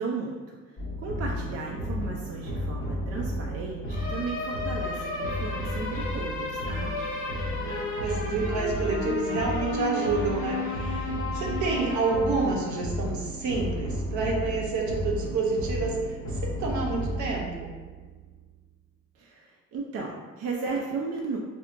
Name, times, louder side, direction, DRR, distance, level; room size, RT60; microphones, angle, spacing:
voice 1, 0.0-6.9 19.1-21.4, right 4 dB, 50° right, -1 dB, 0.4 m, -35 dB
sound 1, 0.8-18.4, left 1 dB, 45° left, 0.9 m, -32 dB
voice 2, 7.6-17.7, right 3 dB, 75° right, -2 dB, 0.8 m, -29 dB
4.4 x 2.0 x 2.5 m, 1.4 s
cardioid pair, 90°, 30 cm